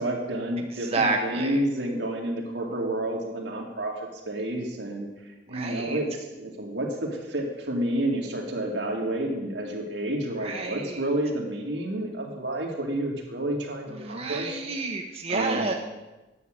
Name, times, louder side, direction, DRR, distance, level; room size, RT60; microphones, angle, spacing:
voice 1, 0.0-5.1 5.5-14.6 15.3-15.7, right 1 dB, 90° right, 0 dB, 2.2 m, -30 dB
voice 2, 0.9-1.6 5.5-6.0 10.4-10.9 14.0-15.7, right 3 dB, 35° right, 2 dB, 0.8 m, -29 dB
9.9 x 7.4 x 6.5 m, 1.1 s
head